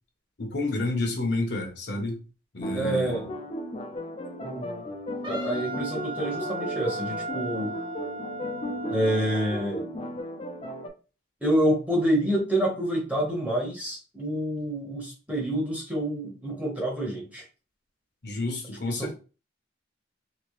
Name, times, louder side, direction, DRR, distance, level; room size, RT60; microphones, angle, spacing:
voice 1, 0.4-2.2 2.5-3.2 18.2-19.1, left 2 dB, 60° left, 0.9 m, -30 dB
sound 1, 2.6-10.9, equal, 30° left, 0.4 m, -35 dB
voice 2, 2.7-3.2 4.4-4.9 5.2-7.7 8.9-9.9 11.4-17.4 18.8-19.1, right 1 dB, 10° right, 1.1 m, -27 dB
Wind instrument woodwind instrument, 5.2-9.7, right 1 dB, 25° right, 0.5 m, -36 dB
2.9 x 2.9 x 3.1 m
head